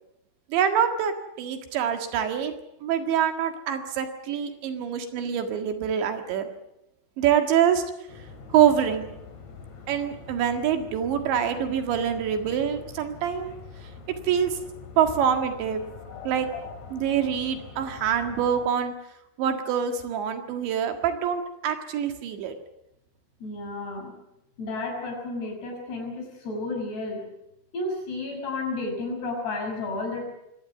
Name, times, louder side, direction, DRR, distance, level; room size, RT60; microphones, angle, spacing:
voice 1, 0.5-2.5 2.8-6.5 7.2-7.8 8.5-9.1 9.9-13.5 14.2-14.6 15.0-15.8 16.3-16.5 16.9-18.9 19.4-22.5, right 8 dB, 70° right, 6 dB, 4.0 m, -25 dB
sound 1, 8.1-18.7, left 5 dB, 40° left, 3.5 m, -44 dB
voice 2, 23.4-24.1 24.6-27.2 27.7-30.2, left 2 dB, 60° left, 2 dB, 8.0 m, -32 dB
24.0 x 18.0 x 8.1 m, 0.85 s
omnidirectional pair, 5.4 m